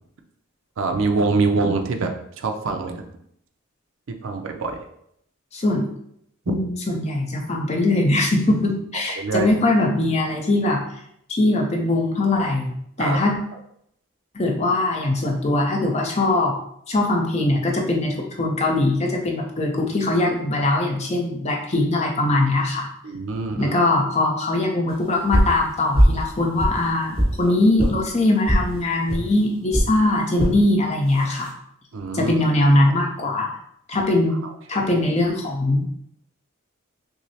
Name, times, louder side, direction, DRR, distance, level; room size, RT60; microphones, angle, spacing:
voice 1, 0.8-3.0 4.2-4.8 6.5-6.6 9.2-9.5 13.0-13.3 23.0-23.7 27.4-27.5 31.9-32.3 34.7-34.8, right 3 dB, 70° right, 5 dB, 0.5 m, -24 dB
voice 2, 5.5-5.9 6.5-10.8 11.3-13.4 14.3-16.5 16.9-22.9 23.6-31.5 32.1-33.6 33.9-35.9, left 2 dB, 30° left, 0 dB, 0.5 m, -21 dB
sound 1, 25.3-25.6 25.9-26.2 26.6-27.4 27.8-27.9 28.5-28.7 29.1-29.2 29.7-29.9 30.4-30.6 31.1-31.5, equal, 30° right, 1.2 m, -19 dB
6.0 x 2.0 x 2.7 m, 0.72 s
head